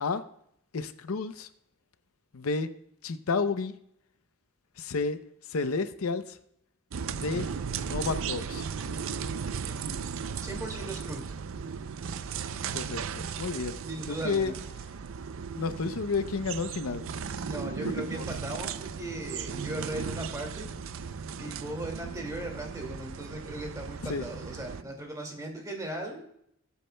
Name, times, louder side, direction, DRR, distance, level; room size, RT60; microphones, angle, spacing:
voice 1, 0.7-1.5 2.3-2.7 3.0-3.7 4.8-5.2 5.5-6.4 7.2-7.5 7.8-8.7 12.7-13.8 14.1-14.5 15.5-17.0 17.8-18.3 24.0-24.3, left 4 dB, 75° left, 11 dB, 0.6 m, -31 dB
sound 1, 6.9-24.8, right 6 dB, 65° right, 0.5 m, -36 dB
voice 2, 10.4-11.2 13.9-14.6 17.4-20.7 21.4-26.2, right 1 dB, 15° right, 1 dB, 2.1 m, -38 dB
20.0 x 8.4 x 2.2 m, 0.72 s
head